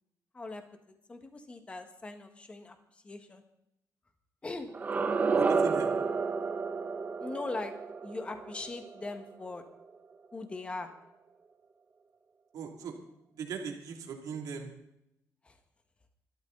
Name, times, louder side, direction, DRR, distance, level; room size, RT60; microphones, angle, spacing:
voice 1, 0.9-2.8 3.0-3.4 4.4-4.7 7.2-7.7 8.0-9.6 10.3-10.9 15.4-15.5, left 3 dB, 20° left, 6 dB, 1.6 m, -40 dB
sound 1, 4.7-9.6, right 4 dB, 25° right, 0.8 m, -31 dB
voice 2, 5.4-5.9 12.5-12.9 13.3-14.7, right 6 dB, 75° right, 2 dB, 2.7 m, -39 dB
23.5 x 13.0 x 4.0 m, 0.81 s
cardioid pair, 170°, 6 cm